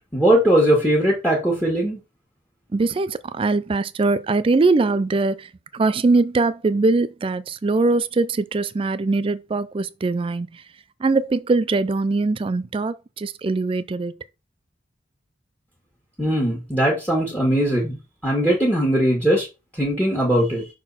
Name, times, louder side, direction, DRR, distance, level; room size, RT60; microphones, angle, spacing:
voice 1, 0.1-2.0 16.2-19.5 19.8-20.7, right 1 dB, 5° left, 1.7 m, -20 dB
voice 2, 2.7-10.6 11.0-14.1, right 3 dB, 30° right, 0.3 m, -22 dB
6.1 x 3.8 x 4.1 m
head